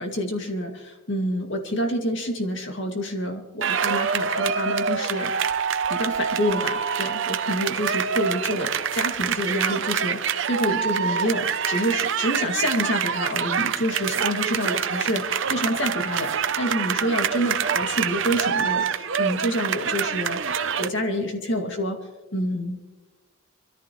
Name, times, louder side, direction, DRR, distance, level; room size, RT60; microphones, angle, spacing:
voice 1, 0.0-5.3 5.9-22.0 22.3-22.8, equal, 60° left, 3 dB, 2.3 m, -27 dB
sound 1, 3.6-20.9, right 7 dB, 65° right, 0.7 m, -26 dB
25.0 x 14.0 x 3.2 m, 1.2 s
head